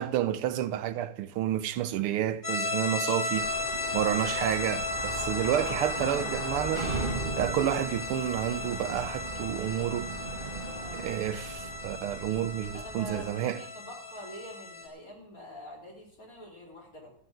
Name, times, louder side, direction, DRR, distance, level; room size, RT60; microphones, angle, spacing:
voice 1, 0.0-3.5 3.9-6.9 7.4-10.1 10.9-13.6, right 11 dB, 90° right, 1.7 m, -30 dB
sound 1, 2.4-14.9, left 3 dB, 20° left, 3.5 m, -35 dB
sound 2, 3.3-13.3, right 3 dB, 25° right, 1.6 m, -38 dB
Thunder, 5.0-10.4 10.6-10.7 11.0-11.1 11.3-11.4 12.0-12.3, left 4 dB, 60° left, 3.2 m, -51 dB
voice 2, 10.7-11.1 12.7-17.1, left 1 dB, 40° left, 4.5 m, -45 dB
13.5 x 7.6 x 9.1 m
omnidirectional pair, 2.4 m